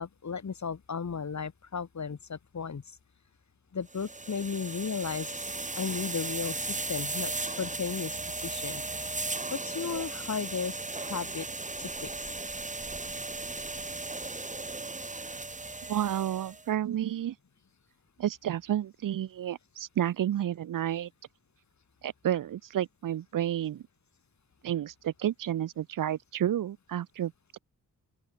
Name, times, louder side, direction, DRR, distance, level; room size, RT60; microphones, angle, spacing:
voice 1, 0.0-2.8 3.7-5.5 5.8-8.8 9.5-11.5 11.8-12.1, left 6 dB, 60° left, 4.4 m, -35 dB
sound 1, 3.9-16.6, right 3 dB, 25° right, 2.0 m, -36 dB
voice 2, 15.9-17.4 18.2-21.1 22.0-23.8 24.6-27.6, right 11 dB, 80° right, 0.6 m, -31 dB
open air
wide cardioid pair, 95°, 32 cm